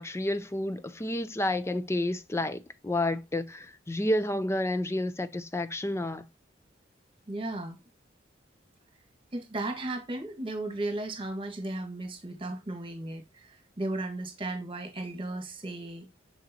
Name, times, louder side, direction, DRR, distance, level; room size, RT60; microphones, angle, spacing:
voice 1, 0.0-6.3, left 1 dB, 15° left, 0.5 m, -30 dB
voice 2, 7.3-7.8 9.3-16.1, right 2 dB, 30° right, 1.5 m, -35 dB
6.6 x 6.1 x 2.8 m
head